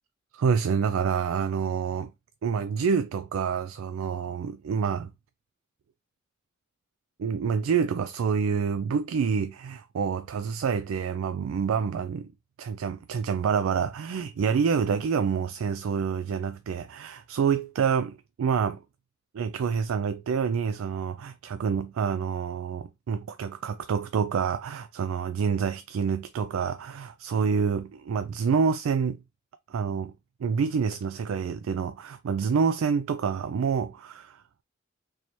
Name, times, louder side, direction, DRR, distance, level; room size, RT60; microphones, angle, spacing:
voice 1, 0.3-2.1 2.4-5.1 7.2-12.3 12.6-18.8 19.3-29.2 29.7-30.1 30.4-34.4, right 6 dB, 85° right, 0.3 m, -27 dB
4.2 x 3.2 x 2.9 m
head